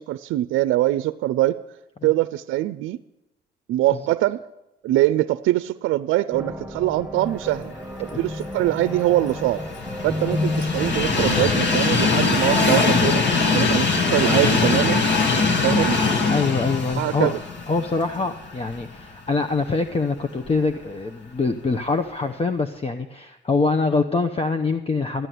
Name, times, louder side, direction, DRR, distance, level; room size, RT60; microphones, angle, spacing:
voice 1, 0.0-1.6 2.0-3.0 3.7-4.4 4.8-7.7 8.0-9.6 10.0-15.0 15.6-16.0 17.0-17.4, right 15 dB, 85° right, 13 dB, 0.5 m, -23 dB
sound 1, 6.3-12.1, left 1 dB, 5° right, 1.2 m, -31 dB
Train, 8.7-18.8 19.3-19.4 20.5-20.6, left 4 dB, 65° left, 2.3 m, -22 dB
voice 2, 16.0-17.4 17.7-25.3, left 3 dB, 30° left, 8 dB, 0.9 m, -24 dB
14.0 x 9.9 x 9.4 m, 0.95 s
cardioid pair, 90°, 20 cm